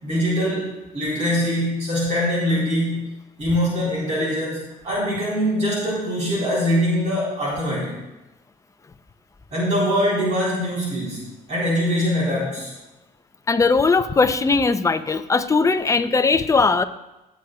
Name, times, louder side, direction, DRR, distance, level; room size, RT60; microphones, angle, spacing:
voice 1, 0.0-3.1 3.4-8.0 9.5-12.7, equal, 45° right, -5 dB, 3.8 m, -23 dB
voice 2, 13.5-16.8, left 4 dB, 20° left, 10 dB, 0.5 m, -19 dB
16.0 x 8.1 x 2.3 m, 1.0 s
cardioid pair, 110°, 17 cm